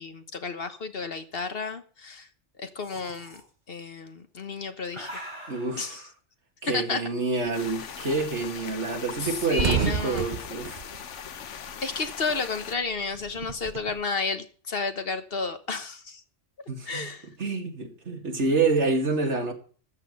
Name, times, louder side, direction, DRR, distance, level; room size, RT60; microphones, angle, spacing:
voice 1, 0.0-2.3 2.6-3.4 3.7-5.2 5.7-6.0 6.7-7.0 9.2-10.4 11.4-16.2 16.9-17.3, left 4 dB, 55° left, 1.4 m, -32 dB
sound 1, 2.8-3.4 4.4-5.8 6.9-8.2, equal, 25° right, 6.4 m, -44 dB
voice 2, 5.5-6.1 6.6-10.8 16.7-17.1 17.4-19.5, right 3 dB, 70° right, 2.6 m, -27 dB
sound 2, 7.5-12.8, left 8 dB, 85° left, 1.2 m, -40 dB
sound 3, 7.8-7.9 8.2-8.3 8.6-8.7 9.1-12.1 12.3-14.0, right 7 dB, 45° right, 0.9 m, -31 dB
14.0 x 8.3 x 5.5 m
omnidirectional pair, 1.2 m